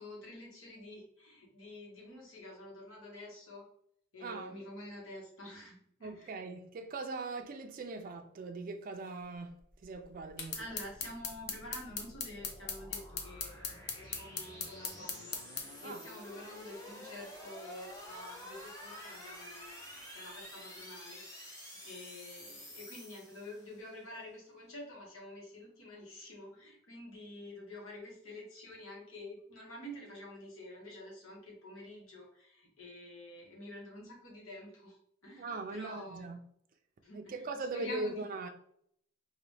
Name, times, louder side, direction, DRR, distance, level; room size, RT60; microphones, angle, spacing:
voice 1, 0.0-3.6 4.1-6.3 10.5-36.2 37.0-37.4 37.7-38.2, left 1 dB, 85° left, 1.5 m, -48 dB
voice 2, 4.2-4.6 6.0-9.6 9.8-10.7 15.8-16.0 35.4-36.4 37.1-38.5, right 3 dB, 45° right, 0.4 m, -40 dB
sound 1, 9.7-24.0, left 1 dB, 15° left, 0.9 m, -50 dB
sound 2, 10.4-15.7, left 6 dB, 55° left, 0.6 m, -39 dB
3.9 x 2.6 x 3.3 m
head